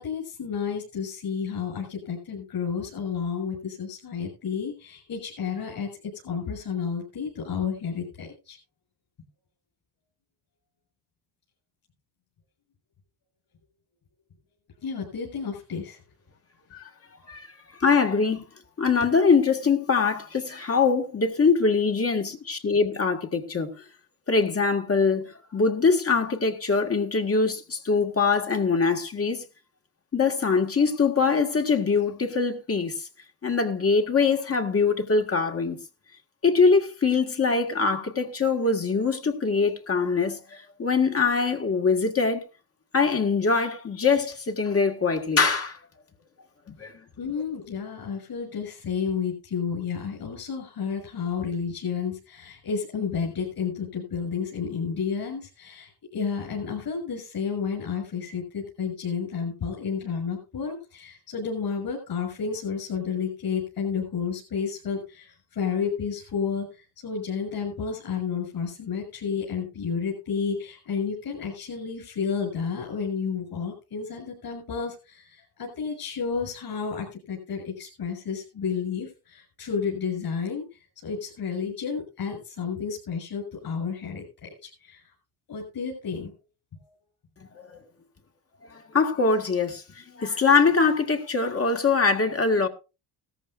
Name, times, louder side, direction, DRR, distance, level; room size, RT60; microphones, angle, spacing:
voice 1, 0.0-8.6 14.8-16.0 47.2-85.1 85.5-86.3 86.8-86.9, left 6 dB, 55° left, 6.8 m, -31 dB
voice 2, 17.8-18.4 18.8-23.7 24.3-29.5 30.1-33.1 33.4-35.8 36.4-42.4 42.9-45.8 46.8-46.9 87.5-87.8 88.7-92.7, left 4 dB, 35° left, 1.7 m, -23 dB
16.5 x 14.0 x 2.5 m
cardioid pair, 95°, 42 cm